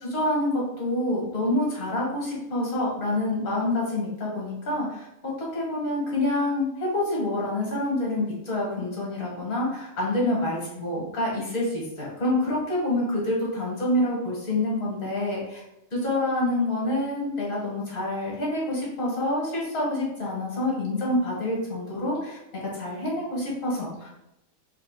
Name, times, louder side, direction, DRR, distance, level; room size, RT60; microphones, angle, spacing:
voice 1, 0.0-15.6 15.9-22.4 22.7-24.2, left 1 dB, 60° left, -4 dB, 1.9 m, -27 dB
4.1 x 2.4 x 3.9 m, 0.85 s
omnidirectional pair, 1.6 m